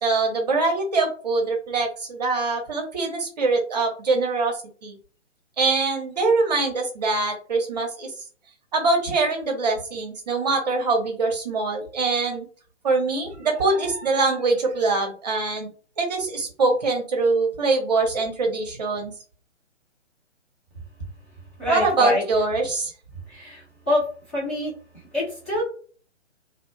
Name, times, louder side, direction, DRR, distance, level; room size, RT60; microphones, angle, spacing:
voice 1, 0.0-4.6 4.8-5.0 5.6-8.1 8.7-12.5 12.8-15.7 16.0-19.1 21.7-22.9, right 3 dB, 35° right, 2 dB, 0.7 m, -23 dB
voice 2, 21.6-22.2 23.3-24.0 24.3-24.7 25.1-25.6, left 1 dB, 10° left, -10 dB, 0.5 m, -25 dB
2.3 x 2.0 x 3.0 m, 0.42 s
figure-of-eight pair, 135°, 37 cm